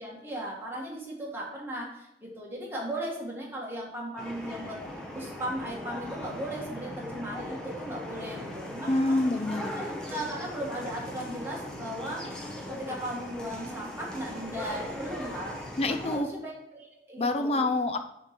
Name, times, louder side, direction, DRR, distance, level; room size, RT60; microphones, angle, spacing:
voice 1, 0.0-4.8 5.1-9.2 9.8-12.4 12.7-15.6 15.9-17.9, right 1 dB, 15° right, -3 dB, 1.5 m, -37 dB
sound 1, 4.2-16.2, left 1 dB, 5° left, 0.9 m, -39 dB
voice 2, 8.8-9.8 15.8-16.3 17.2-18.0, left 2 dB, 35° left, 8 dB, 0.5 m, -27 dB
6.4 x 3.2 x 5.8 m, 0.85 s
head